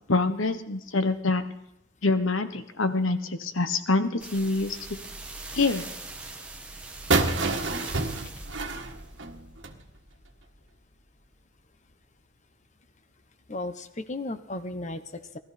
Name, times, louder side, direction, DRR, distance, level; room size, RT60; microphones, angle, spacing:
voice 1, 0.1-1.4 2.0-4.8 5.5-5.9, left 3 dB, 85° left, 10 dB, 1.3 m, -25 dB
sound 1, 4.2-10.7 11.2-11.3, right 2 dB, 5° right, 1.3 m, -41 dB
sound 2, 7.1-9.8, right 3 dB, 65° right, 1.6 m, -27 dB
voice 2, 13.5-15.4, left 2 dB, 35° left, 10 dB, 1.0 m, -35 dB
19.5 x 13.0 x 4.3 m, 0.85 s
head